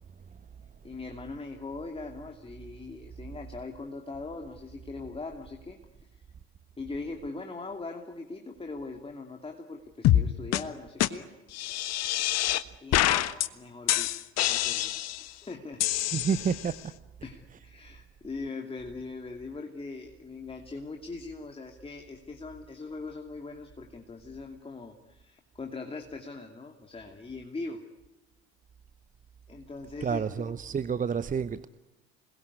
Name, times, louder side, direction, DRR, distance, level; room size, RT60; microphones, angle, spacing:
voice 1, 0.8-6.1 6.8-11.3 12.8-15.9 17.2-27.8 29.5-30.5, left 3 dB, 15° left, 4 dB, 2.7 m, -41 dB
sound 1, 10.0-10.2 10.5-10.6 11.0-11.1 11.5-12.6 12.9-13.5 13.9-15.3 15.8-16.7, left 13 dB, 50° left, 1.4 m, -26 dB
voice 2, 16.1-16.7 17.5-17.6 30.0-31.7, right 6 dB, 25° right, 15 dB, 0.9 m, -29 dB
27.5 x 21.5 x 9.8 m, 1.1 s
figure-of-eight pair, 60°, 33 cm